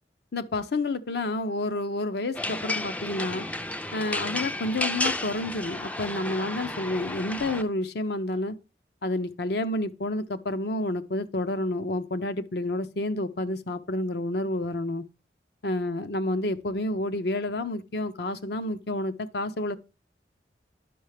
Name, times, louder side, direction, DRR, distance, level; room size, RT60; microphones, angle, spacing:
voice 1, 0.3-3.5 3.9-8.6 9.0-15.0 15.6-19.8, left 2 dB, 65° left, 0.7 m, -29 dB
sound 1, 2.3-7.6, left 1 dB, 10° left, 0.3 m, -32 dB
10.0 x 5.6 x 3.3 m
head